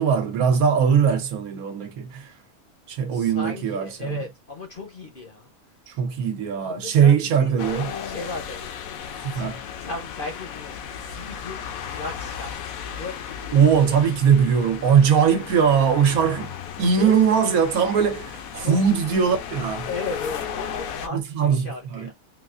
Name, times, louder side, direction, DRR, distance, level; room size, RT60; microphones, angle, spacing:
voice 1, 0.0-2.3 2.9-4.2 5.9-7.9 9.3-9.6 13.5-16.5 16.8-19.9 21.1-22.1, right 7 dB, 75° right, 1.2 m, -20 dB
voice 2, 3.1-5.5 6.6-7.5 8.0-8.6 8.9-13.4 17.0-17.2 18.5-18.8 19.9-22.1, left 3 dB, 45° left, 0.7 m, -36 dB
sound 1, 7.6-21.1, left 8 dB, 70° left, 1.0 m, -35 dB
3.9 x 2.4 x 2.4 m
omnidirectional pair, 1.6 m